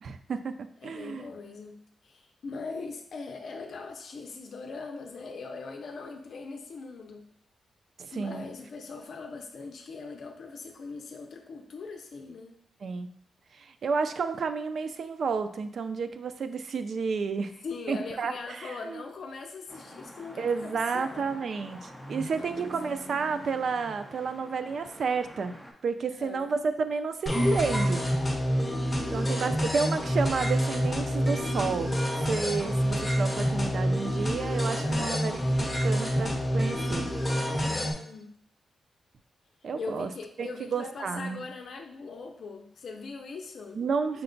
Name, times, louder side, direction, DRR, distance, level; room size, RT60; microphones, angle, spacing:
voice 1, 0.0-1.3 8.0-8.5 12.8-13.1 13.5-19.0 20.4-25.5 25.8-28.0 29.1-32.0 32.3-35.4 35.8-37.1 39.6-40.1 40.4-41.5 43.7-44.2, right 5 dB, 60° right, 10 dB, 0.3 m, -31 dB
voice 2, 0.8-7.3 8.1-12.6 17.6-21.5 22.4-22.7 26.2-26.5 28.6-29.8 34.8-35.2 37.5-38.3 39.8-43.8, left 4 dB, 65° left, 3 dB, 0.5 m, -41 dB
sound 1, 19.7-25.7, right 1 dB, 10° right, 0.8 m, -45 dB
sound 2, 27.3-37.9, equal, 10° left, 1.1 m, -27 dB
5.7 x 2.2 x 3.8 m, 0.67 s
wide cardioid pair, 120°, 0 cm